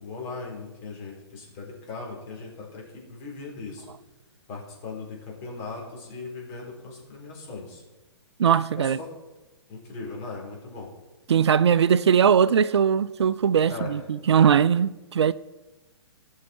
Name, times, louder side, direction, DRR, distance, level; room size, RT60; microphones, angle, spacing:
voice 1, 0.0-3.9 4.5-7.8 8.7-9.1 9.7-10.9 13.6-13.9 14.2-14.5, left 3 dB, 40° left, 4.0 m, -38 dB
voice 2, 8.4-9.0 11.3-15.3, right 7 dB, 70° right, 0.4 m, -20 dB
17.0 x 6.5 x 4.4 m
figure-of-eight pair, 125°, 15 cm